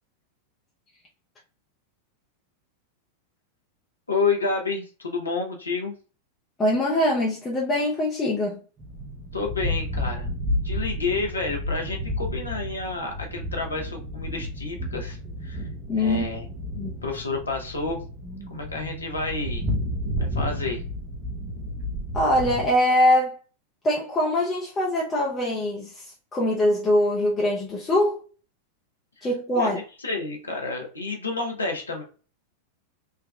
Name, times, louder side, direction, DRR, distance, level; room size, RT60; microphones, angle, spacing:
voice 1, 4.1-6.0 9.3-10.3 10.6-15.7 15.9-16.4 17.0-18.0 18.5-19.7 20.2-20.8 29.2-29.3 29.6-32.0, left 3 dB, 75° left, 0.7 m, -29 dB
voice 2, 6.6-8.6 15.9-16.2 16.7-17.0 22.1-23.4 23.8-28.2 29.2-29.8, left 1 dB, 20° left, 0.6 m, -23 dB
sound 1, 8.8-22.7, left 1 dB, 25° right, 0.8 m, -31 dB
3.4 x 2.2 x 2.2 m
figure-of-eight pair, 90°, 0 cm